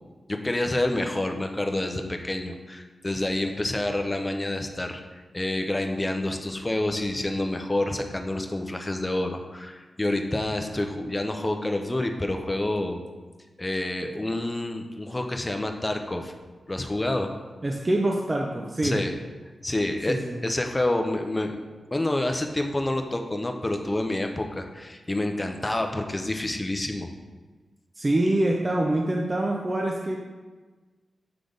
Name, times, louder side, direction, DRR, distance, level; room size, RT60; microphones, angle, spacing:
voice 1, 0.3-13.0 13.6-16.3 16.7-17.3 18.8-19.1 19.6-20.2 20.4-21.6 21.9-27.1, left 1 dB, 20° left, 5 dB, 0.6 m, -28 dB
voice 2, 17.6-19.0 20.1-20.4 28.0-30.2, right 1 dB, 30° right, 0 dB, 0.6 m, -25 dB
7.8 x 3.4 x 3.9 m, 1.3 s
cardioid pair, 80°, 0 cm